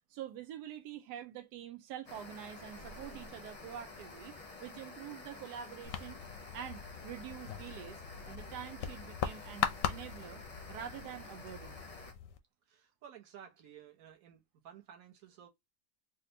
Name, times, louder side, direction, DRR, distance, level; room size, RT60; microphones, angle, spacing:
voice 1, 0.1-4.3 4.6-6.2 6.5-8.0 8.3-10.4 10.7-11.8, right 10 dB, 90° right, 1.2 m, -46 dB
sound 1, 2.1-12.1, left 3 dB, 35° left, 0.6 m, -50 dB
sound 2, 2.4-5.4, right 1 dB, 40° right, 0.8 m, -58 dB
sound 3, 5.8-12.4, left 8 dB, 70° left, 0.8 m, -40 dB
voice 2, 12.7-15.5, right 9 dB, 65° right, 1.3 m, -54 dB
4.2 x 2.2 x 2.7 m
omnidirectional pair, 1.7 m